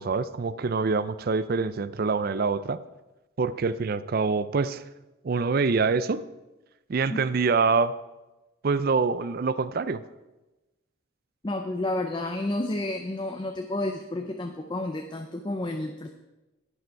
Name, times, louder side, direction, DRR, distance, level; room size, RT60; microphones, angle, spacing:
voice 1, 0.0-2.8 3.4-4.8 5.2-6.2 6.9-7.9 8.6-10.0, right 4 dB, 45° right, 15 dB, 0.4 m, -25 dB
voice 2, 11.4-16.1, left 1 dB, 20° left, 5 dB, 0.5 m, -30 dB
11.5 x 9.3 x 4.6 m, 1.1 s
head